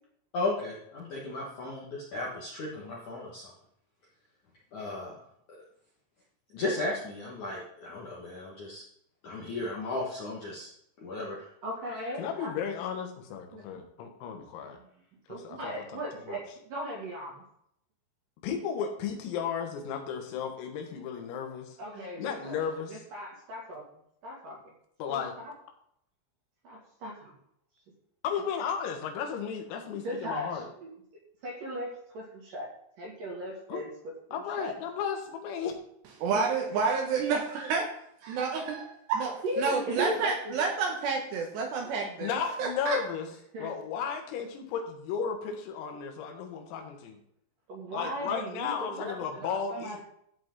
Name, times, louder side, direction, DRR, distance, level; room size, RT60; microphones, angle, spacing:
voice 1, 0.3-3.4 4.7-5.1 6.5-8.8 9.2-10.7 11.0-11.5, left 2 dB, 60° left, -4 dB, 2.0 m, -35 dB
voice 2, 11.6-12.5 13.5-13.8 15.3-17.4 21.8-22.6 22.9-23.8 24.2-24.6 25.1-25.5 26.6-27.3 30.0-30.9 31.4-32.7 33.0-33.9 34.6-34.7 36.3-36.5 39.4-40.5 43.5-43.7 47.7-50.0, equal, 50° right, -2 dB, 3.1 m, -37 dB
voice 3, 12.2-14.8 15.4-15.7 16.3-16.4 18.4-21.8 22.2-23.0 25.0-25.3 28.2-30.7 33.7-33.8 34.3-35.8 42.2-43.3 43.6-47.2 47.9-50.0, left 7 dB, 85° left, 4 dB, 4.2 m, -34 dB
voice 4, 36.2-37.9 38.2-43.0, right 5 dB, 70° right, 2 dB, 2.9 m, -29 dB
13.0 x 8.1 x 3.9 m, 0.71 s
omnidirectional pair, 6.0 m